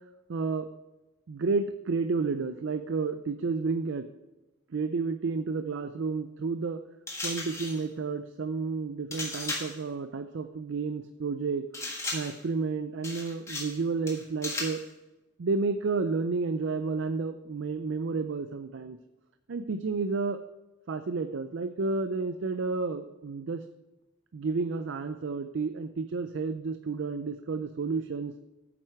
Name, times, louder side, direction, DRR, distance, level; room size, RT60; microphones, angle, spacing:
voice 1, 0.3-0.7 1.3-4.1 4.7-6.8 7.2-14.8 15.4-19.0 19.5-20.4 20.9-23.6 24.3-28.3, right 4 dB, 70° right, 9 dB, 0.4 m, -31 dB
sound 1, 7.1-7.8 9.1-9.8 11.7-12.4 13.0-13.8 14.1-14.8, left 2 dB, 15° left, 1.5 m, -36 dB
9.2 x 7.7 x 4.7 m, 1.1 s
head